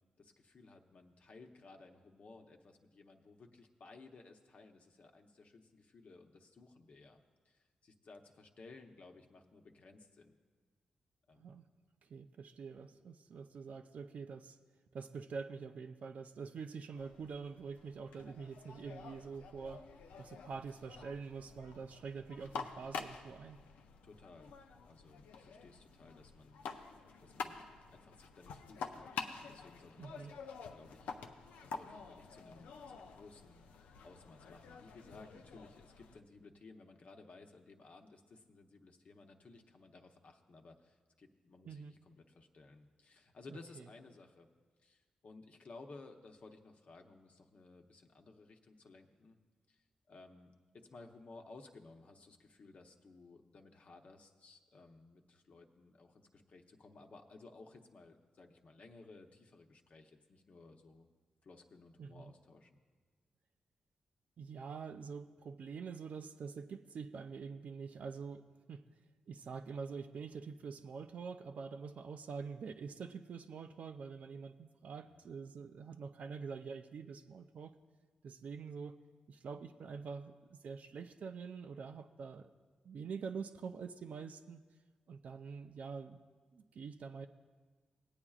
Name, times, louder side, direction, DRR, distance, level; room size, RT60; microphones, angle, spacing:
voice 1, 0.2-10.4 11.3-11.5 24.0-24.5 24.8-26.6 27.2-30.4 30.7-31.1 31.6-44.5 44.8-49.4 49.7-50.5 50.7-61.1 61.4-62.7 75.0-75.3, left 3 dB, 60° left, 3 dB, 0.9 m, -57 dB
voice 2, 12.0-14.6 14.9-19.8 20.2-23.6 30.0-30.3 41.6-41.9 43.5-43.8 62.0-62.3 64.4-68.8 69.3-77.7 78.2-79.0 79.3-82.5 82.8-84.6 85.1-86.2 86.5-87.3, right 5 dB, 70° right, 8 dB, 0.5 m, -46 dB
sound 1, 17.0-36.2, left 5 dB, 85° left, 0.5 m, -49 dB
20.0 x 8.7 x 2.4 m, 1.5 s
supercardioid pair, 50°, 3 cm